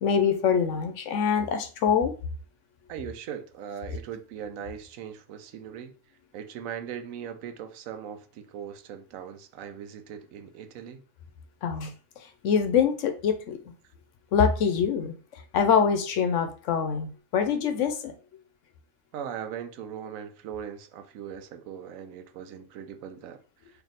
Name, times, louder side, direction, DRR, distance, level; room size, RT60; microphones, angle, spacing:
voice 1, 0.0-2.1 11.6-13.6 14.3-18.1, left 7 dB, 70° left, 0.9 m, -25 dB
voice 2, 2.9-6.0 6.3-11.0 11.8-11.9 19.1-23.8, right 8 dB, 75° right, 1.0 m, -39 dB
3.4 x 2.6 x 4.0 m
omnidirectional pair, 1.4 m